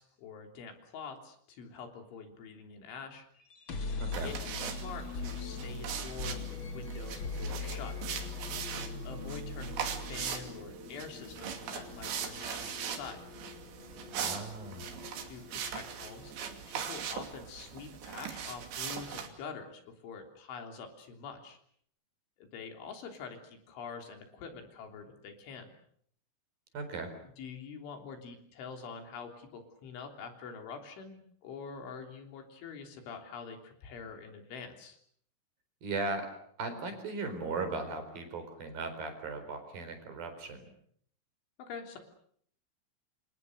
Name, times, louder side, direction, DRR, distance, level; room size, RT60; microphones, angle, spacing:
voice 1, 0.0-3.3 4.2-4.3 4.8-8.0 9.1-13.2 15.2-16.3 16.7-21.6 22.4-25.7 27.4-35.0 41.6-42.0, left 5 dB, 75° left, 4 dB, 5.8 m, -45 dB
sound 1, 3.4-17.2, left 3 dB, 50° left, 1.4 m, -42 dB
voice 2, 4.0-4.3 14.1-15.0 26.7-27.1 35.8-36.3 36.6-40.7, right 3 dB, 50° right, 7 dB, 6.0 m, -37 dB
sound 2, 4.1-19.3, right 8 dB, 70° right, 4.8 m, -40 dB
28.5 x 26.5 x 6.8 m, 0.65 s
omnidirectional pair, 5.5 m